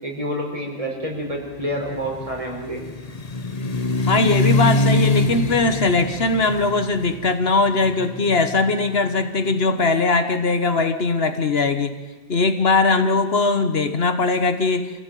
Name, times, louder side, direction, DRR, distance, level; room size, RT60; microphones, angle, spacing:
voice 1, 0.0-2.8, equal, 30° right, 0 dB, 5.1 m, -28 dB
sound 1, 1.4-9.4, left 2 dB, 35° left, 1.2 m, -25 dB
voice 2, 4.1-11.9 12.3-14.9, left 3 dB, 70° left, 9 dB, 1.5 m, -20 dB
26.0 x 16.5 x 9.2 m, 1.3 s
omnidirectional pair, 1.1 m